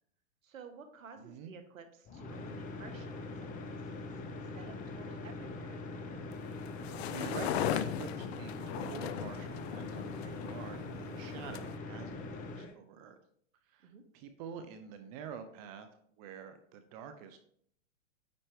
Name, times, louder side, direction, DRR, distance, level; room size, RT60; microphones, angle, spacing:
voice 1, 0.4-5.8 13.8-14.0, right 5 dB, 85° right, 8 dB, 1.3 m, -53 dB
voice 2, 1.3-1.6 6.6-6.7 7.1-13.2 13.7-15.9 16.2-17.4, right 7 dB, 30° right, 8 dB, 0.5 m, -47 dB
sound 1, 2.0-12.7, left 3 dB, 20° left, 0.7 m, -43 dB
sound 2, 6.3-11.7, left 9 dB, 55° left, 0.6 m, -38 dB
9.1 x 4.3 x 3.4 m, 0.65 s
hypercardioid pair, 130°, 39 cm